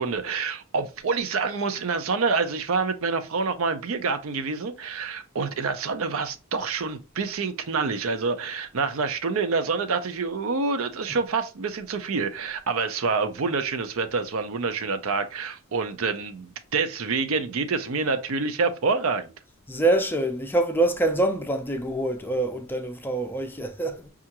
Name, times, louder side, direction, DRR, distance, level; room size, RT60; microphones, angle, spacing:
voice 1, 0.0-19.3, right 4 dB, 70° right, 0.5 m, -27 dB
voice 2, 19.7-24.1, right 2 dB, 10° left, 0.4 m, -25 dB
5.5 x 2.4 x 2.8 m
head